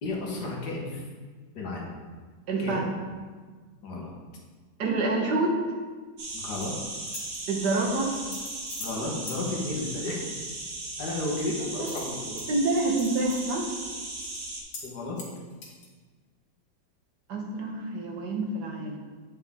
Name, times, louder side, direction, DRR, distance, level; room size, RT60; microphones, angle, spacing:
voice 1, 0.0-1.1 1.6-1.9 2.6-2.9 3.8-4.1 6.3-6.8 8.8-10.2 11.0-12.4 14.8-15.2, left 2 dB, 65° left, -2 dB, 1.8 m, -33 dB
voice 2, 2.5-2.9 4.8-5.6 7.5-8.1 11.8-11.9 12.5-13.7 17.3-19.0, right 2 dB, 70° right, 0 dB, 1.8 m, -27 dB
sound 1, 6.2-14.6, right 2 dB, 90° right, 2.0 m, -37 dB
sound 2, 6.3-6.7 7.0-7.4 8.1-9.0 9.3-9.4 11.9-12.4 12.8-13.4 13.8-13.9 14.2-14.4 14.7-14.9 15.2-15.9, left 3 dB, 85° left, 2.2 m, -42 dB
8.9 x 5.4 x 3.6 m, 1.5 s
omnidirectional pair, 1.9 m